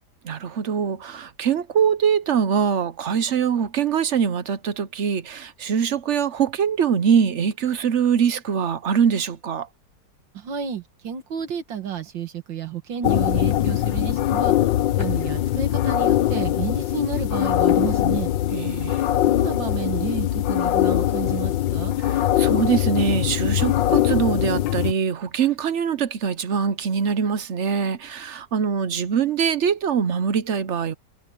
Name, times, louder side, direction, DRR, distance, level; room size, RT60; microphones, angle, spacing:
voice 1, 0.2-9.7 18.5-19.0 22.0-30.9, right 7 dB, 55° right, 0.8 m, -23 dB
voice 2, 10.3-14.5 15.0-18.3 19.2-21.9, right 8 dB, 85° right, 2.3 m, -31 dB
sound 1, 13.0-24.9, left 13 dB, 80° left, 1.5 m, -22 dB
omnidirectional pair, 2.0 m